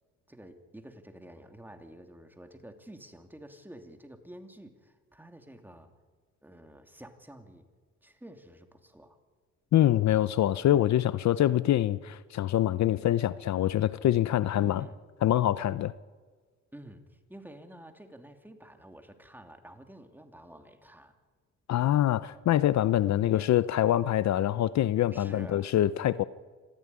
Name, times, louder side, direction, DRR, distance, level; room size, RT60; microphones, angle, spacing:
voice 1, 0.3-5.9 6.4-7.7 8.0-9.2 14.5-15.0 16.7-21.1 23.1-23.5 25.1-25.7, right 1 dB, 5° right, 2.9 m, -49 dB
voice 2, 9.7-14.8 15.2-15.9 21.7-26.2, left 12 dB, 65° left, 0.7 m, -25 dB
26.0 x 15.0 x 9.8 m
cardioid pair, 90°, 30 cm